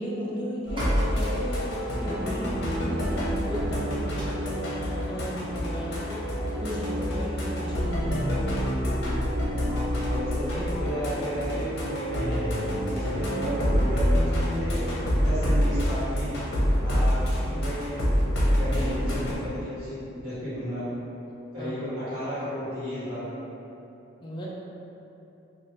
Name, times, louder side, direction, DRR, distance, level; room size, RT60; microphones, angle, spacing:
voice 1, 0.0-2.6 2.8-6.3 6.6-8.7 16.9-17.6 21.6-21.9 24.2-24.5, equal, 25° left, -5 dB, 0.4 m, -35 dB
sound 1, 0.6-8.0, equal, 25° right, 0.8 m, -44 dB
sound 2, 0.7-19.3, equal, 60° left, 0.7 m, -27 dB
voice 2, 9.7-12.5 12.9-14.8 15.1-16.3 16.8-18.0 18.4-20.8 21.5-23.2, equal, 45° right, -19 dB, 1.3 m, -33 dB
2.7 x 2.4 x 3.1 m, 2.9 s
head